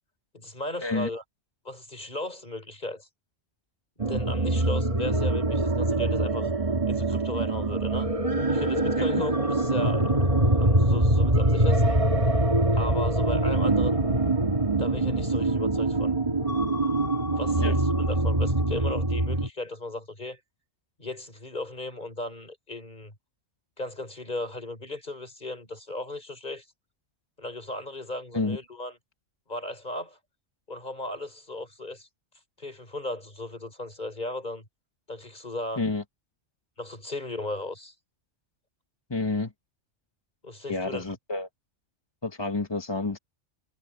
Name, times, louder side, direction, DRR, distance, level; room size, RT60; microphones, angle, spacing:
voice 1, 0.3-1.2 1.6-3.1 4.0-6.5 6.9-8.1 8.5-10.2 10.5-12.0 12.7-14.0 14.8-16.1 16.7-20.4 21.0-23.1 23.8-26.7 27.4-29.0 29.5-30.2 30.7-32.1 32.6-34.7 35.1-35.9 36.8-38.0 40.4-41.2, left 2 dB, 35° left, 5.3 m, -36 dB
sound 1, 4.0-19.5, right 2 dB, 25° right, 2.0 m, -24 dB
voice 2, 39.1-39.5 40.7-41.5 42.2-43.2, left 3 dB, 20° left, 1.3 m, -29 dB
omnidirectional pair, 1.3 m